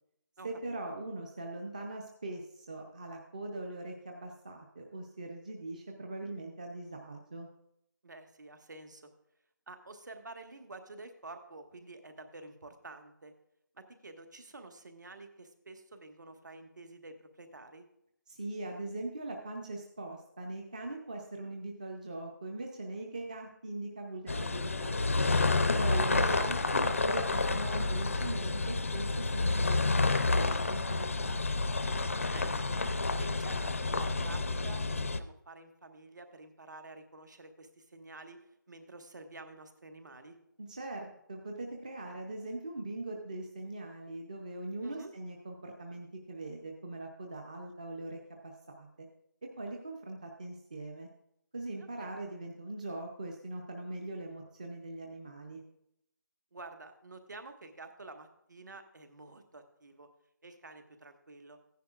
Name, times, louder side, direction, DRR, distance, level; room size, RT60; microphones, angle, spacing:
voice 1, 0.4-7.5 18.3-25.0 25.7-29.9 30.3-31.1 31.3-31.5 40.6-48.5 48.8-48.9 49.4-51.1 51.5-55.6, right 2 dB, 20° right, 2 dB, 0.6 m, -41 dB
voice 2, 8.0-9.0 9.7-13.3 13.7-17.8 25.9-26.6 32.3-32.8 33.2-38.4 38.7-40.4 44.8-45.1 51.8-52.1 56.5-60.1 60.4-61.6, right 2 dB, 60° right, 6 dB, 1.5 m, -49 dB
sound 1, 24.3-35.2, left 3 dB, 40° left, 0.5 m, -29 dB
15.0 x 10.0 x 2.4 m, 0.78 s
figure-of-eight pair, 175°, 11 cm